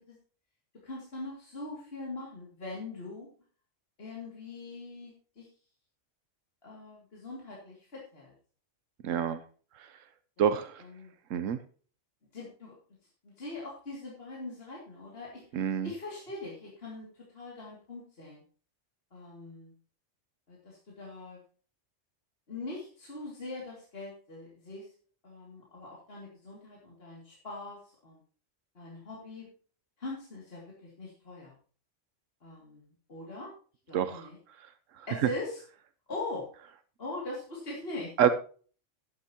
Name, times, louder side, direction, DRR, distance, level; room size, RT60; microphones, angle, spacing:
voice 1, 0.8-3.3 4.0-5.5 6.6-8.3 10.4-10.5 10.8-11.1 12.3-12.7 13.2-17.1 17.3-18.4 19.1-19.7 20.5-21.4 22.5-24.9 25.2-28.2 28.7-29.5 30.0-31.5 32.4-33.5 33.9-34.4 35.1-35.6 36.1-36.5 37.0-38.1, left 2 dB, 50° left, -4 dB, 2.8 m, -42 dB
voice 2, 9.0-9.4 10.4-10.8 11.3-11.6 15.5-15.9 33.9-34.3 38.2-38.3, right 8 dB, 90° right, 11 dB, 1.1 m, -27 dB
12.0 x 10.5 x 2.9 m, 0.40 s
omnidirectional pair, 1.3 m